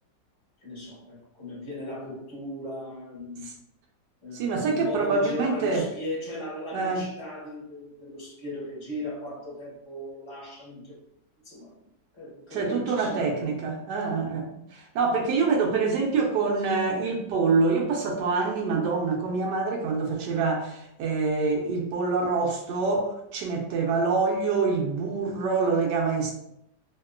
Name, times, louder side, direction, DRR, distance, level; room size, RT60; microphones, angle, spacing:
voice 1, 0.6-3.4 4.2-11.0 11.4-11.8 12.1-13.5 16.5-16.6, left 1 dB, 20° left, -7 dB, 1.3 m, -37 dB
voice 2, 4.3-5.9 6.7-7.0 12.5-26.3, right 4 dB, 75° right, 1 dB, 1.2 m, -26 dB
3.0 x 2.8 x 2.3 m, 0.76 s
omnidirectional pair, 1.9 m